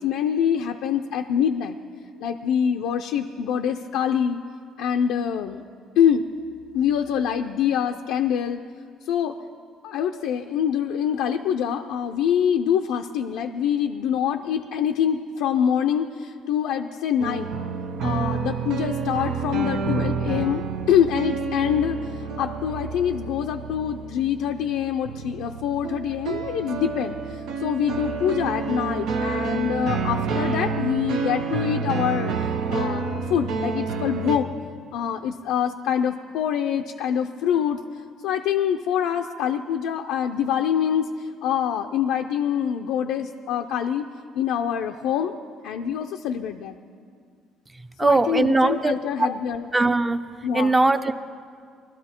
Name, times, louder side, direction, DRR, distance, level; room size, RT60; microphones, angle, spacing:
voice 1, 0.0-1.8 2.2-4.4 4.8-5.6 6.0-6.2 6.7-8.6 9.0-9.4 9.8-17.5 18.0-32.3 32.7-34.5 34.9-37.8 38.2-44.1 44.4-45.3 45.6-46.8 48.0-49.7 50.4-50.8, left 9 dB, 80° left, 4 dB, 0.5 m, -25 dB
sound 1, 17.2-34.4, right 5 dB, 75° right, 0.9 m, -29 dB
voice 2, 48.0-48.9 49.7-50.2 50.5-51.1, right 2 dB, 15° right, 10 dB, 0.7 m, -19 dB
21.0 x 12.5 x 4.4 m, 2.2 s
cardioid pair, 90°, 0 cm